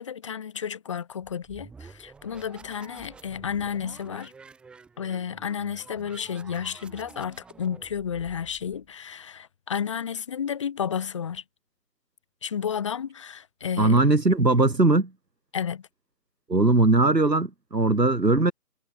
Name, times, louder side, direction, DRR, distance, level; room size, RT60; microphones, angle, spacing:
voice 1, 0.0-4.3 5.0-11.4 12.4-14.1 15.5-15.9, left 8 dB, 20° left, 2.7 m, -32 dB
sound 1, 1.2-8.9, right 4 dB, ahead, 3.4 m, -49 dB
voice 2, 13.8-15.1 16.5-18.5, right 2 dB, 85° right, 2.1 m, -20 dB
figure-of-eight pair, 155°, 48 cm